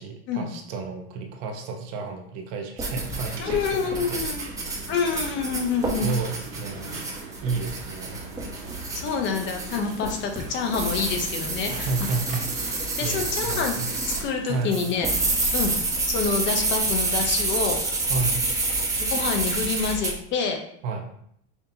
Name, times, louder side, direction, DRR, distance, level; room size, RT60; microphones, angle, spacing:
voice 1, 0.0-4.2 4.7-4.9 6.0-7.0 7.4-8.2 11.7-12.5 13.0-13.9 14.5-14.7 18.1-18.3 20.8-21.2, right 4 dB, 55° right, 3 dB, 0.9 m, -31 dB
sound 1, 2.8-14.2 14.7-20.1, right 2 dB, 10° right, 1.0 m, -28 dB
sound 2, 3.1-15.3, right 3 dB, 75° right, 1.6 m, -41 dB
voice 2, 3.4-4.4 4.9-6.1 8.9-11.9 13.0-13.8 14.1-15.1 15.5-15.8 16.1-17.8 19.0-20.6, left 5 dB, 35° left, 4 dB, 0.6 m, -27 dB
5.7 x 2.8 x 2.7 m, 0.69 s
supercardioid pair, 125°, 33 cm